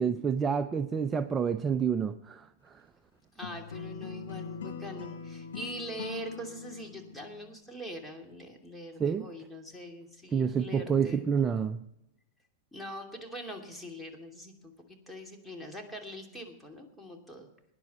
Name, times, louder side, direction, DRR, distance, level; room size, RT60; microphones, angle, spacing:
voice 1, 0.0-2.5 9.0-9.3 10.3-11.8, right 7 dB, 20° right, 9 dB, 0.6 m, -28 dB
voice 2, 3.3-11.3 12.7-17.5, equal, 5° left, 1 dB, 2.8 m, -43 dB
sound 1, 3.4-7.5, left 6 dB, 80° left, 1.8 m, -42 dB
18.5 x 10.5 x 4.3 m, 0.83 s
hypercardioid pair, 110°, 0 cm